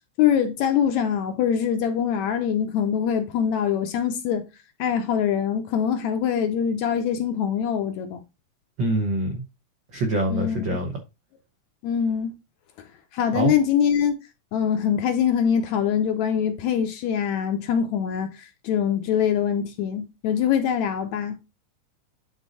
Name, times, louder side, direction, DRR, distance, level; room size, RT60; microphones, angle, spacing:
voice 1, 0.2-4.5 4.8-8.2 10.3-10.8 11.8-12.3 13.1-14.2 14.5-18.3 18.6-21.4, left 8 dB, 75° left, 1.8 m, -23 dB
voice 2, 8.8-9.4 9.9-11.0 13.3-13.5, right 2 dB, 75° right, 1.0 m, -25 dB
10.0 x 3.9 x 4.0 m
omnidirectional pair, 3.8 m